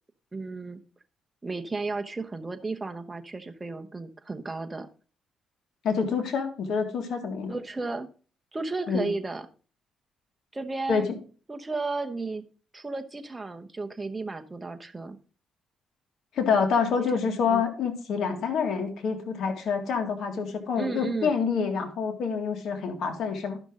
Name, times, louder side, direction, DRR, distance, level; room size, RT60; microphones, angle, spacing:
voice 1, 0.3-0.8 1.4-4.9 7.5-8.1 8.5-9.5 10.5-11.1 11.5-12.4 12.7-15.2 17.0-17.2 17.5-17.6 20.8-21.4, right 3 dB, 20° right, 7 dB, 1.0 m, -33 dB
voice 2, 5.8-7.5 8.9-9.1 10.9-11.1 16.3-23.6, left 5 dB, 65° left, 5 dB, 1.9 m, -27 dB
12.0 x 6.0 x 3.8 m, 0.38 s
cardioid pair, 90°, 0 cm